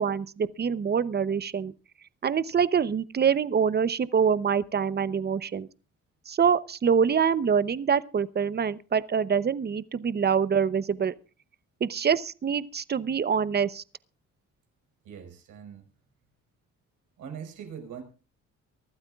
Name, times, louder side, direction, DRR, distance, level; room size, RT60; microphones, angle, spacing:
voice 1, 0.0-1.7 2.2-5.7 6.3-11.1 11.8-13.8, right 7 dB, 35° right, 0.8 m, -25 dB
voice 2, 15.0-16.1 17.2-18.0, right 7 dB, 80° right, 5.1 m, -42 dB
24.0 x 12.5 x 2.4 m
cardioid pair, 90°, 30 cm